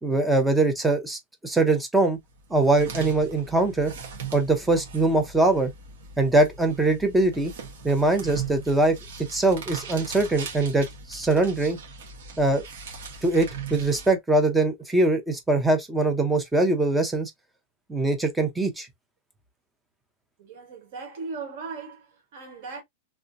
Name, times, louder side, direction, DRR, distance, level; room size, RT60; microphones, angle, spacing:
voice 1, 0.0-2.2 2.5-3.9 4.3-5.7 6.2-7.5 7.8-9.0 9.3-11.8 12.4-12.6 13.2-17.3 17.9-18.9, right 2 dB, 5° right, 0.6 m, -22 dB
sound 1, 2.3-14.1, right 6 dB, 65° right, 1.4 m, -39 dB
voice 2, 20.4-22.8, right 4 dB, 45° right, 1.6 m, -38 dB
3.2 x 2.8 x 2.5 m
supercardioid pair, 180°, 0 cm